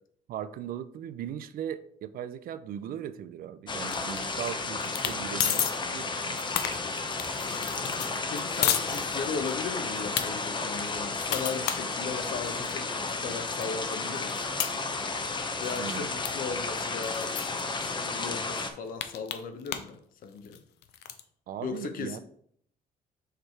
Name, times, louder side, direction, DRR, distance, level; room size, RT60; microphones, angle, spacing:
voice 1, 0.3-6.7 15.8-16.1 21.5-22.2, right 9 dB, 60° right, 0.5 m, -38 dB
sound 1, 3.7-18.7, left 3 dB, 30° left, 0.7 m, -33 dB
sound 2, 3.9-4.5 4.8-5.1 5.4-5.7 6.2-9.5 9.9-10.2 10.7-12.7 13.2-13.3 13.6-15.4 15.6-15.9 16.2-16.3 16.6-16.7 17.0-17.6 18.2-18.3 18.5-19.9 20.2-21.2, left 11 dB, 80° left, 0.6 m, -32 dB
voice 2, 7.4-7.8 8.3-14.4 15.6-17.4 17.8-20.6 21.6-22.2, left 5 dB, 55° left, 0.8 m, -37 dB
6.6 x 3.3 x 4.4 m
cardioid pair, 110°, 17 cm